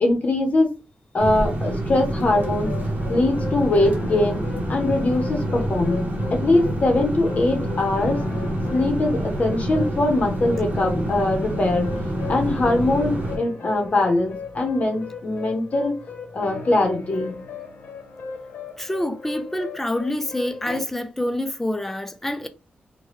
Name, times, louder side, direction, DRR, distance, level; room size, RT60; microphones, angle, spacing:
voice 1, 0.0-0.7 1.1-2.7 3.1-4.4 4.7-8.2 8.7-11.9 12.3-16.0 16.3-17.4, left 2 dB, 45° left, 0.8 m, -22 dB
sound 1, 1.2-13.4, right 1 dB, 55° right, 1.0 m, -27 dB
sound 2, 2.1-20.8, left 4 dB, 75° left, 0.8 m, -37 dB
voice 2, 18.8-22.5, left 1 dB, 10° left, 0.4 m, -27 dB
3.1 x 2.2 x 3.1 m
wide cardioid pair, 115°, 4 cm